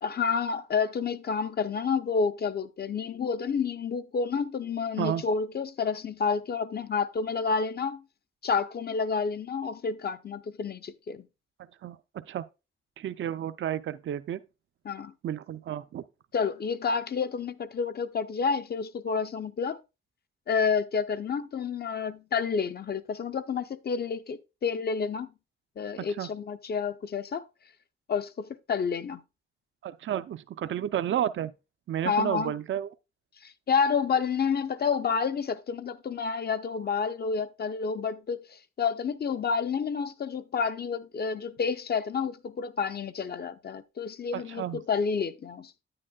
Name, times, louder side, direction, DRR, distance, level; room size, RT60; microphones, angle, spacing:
voice 1, 0.0-8.0 8.4-11.2 14.9-15.1 16.3-19.8 20.5-25.3 25.8-27.4 28.1-29.2 32.0-32.5 33.4-45.7, left 5 dB, 50° left, 0.6 m, -29 dB
voice 2, 11.8-12.5 13.0-14.4 15.2-16.0 26.0-26.3 29.8-31.5 31.9-32.9 44.3-44.8, right 10 dB, 65° right, 0.4 m, -31 dB
9.3 x 8.8 x 2.3 m
wide cardioid pair, 130°, 21 cm